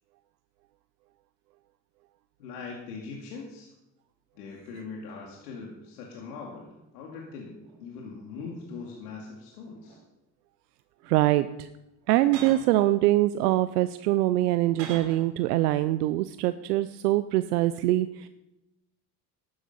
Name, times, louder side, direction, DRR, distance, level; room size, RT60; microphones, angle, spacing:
voice 1, 2.4-3.7 4.3-10.0, left 4 dB, 85° left, -1 dB, 2.4 m, -41 dB
sound 1, 4.4-4.5 5.1-5.6 6.4-7.9 8.2-9.2 9.6-10.3 11.0-11.2 12.0-12.8 13.5-15.4 15.7-15.9, right 6 dB, 65° right, 3.2 m, -47 dB
voice 2, 11.1-11.7 12.1-18.3, right 15 dB, 90° right, 13 dB, 0.6 m, -24 dB
12.0 x 10.5 x 5.4 m, 0.92 s
hypercardioid pair, 80°, 45 cm